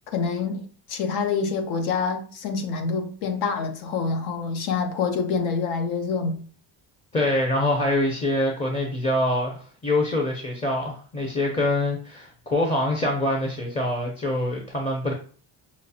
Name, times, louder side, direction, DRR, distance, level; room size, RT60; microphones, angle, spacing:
voice 1, 0.1-6.4, left 5 dB, 85° left, 0.9 m, -26 dB
voice 2, 7.1-15.1, left 1 dB, 15° left, 0.5 m, -25 dB
5.6 x 2.0 x 2.7 m
cardioid pair, 135°, 47 cm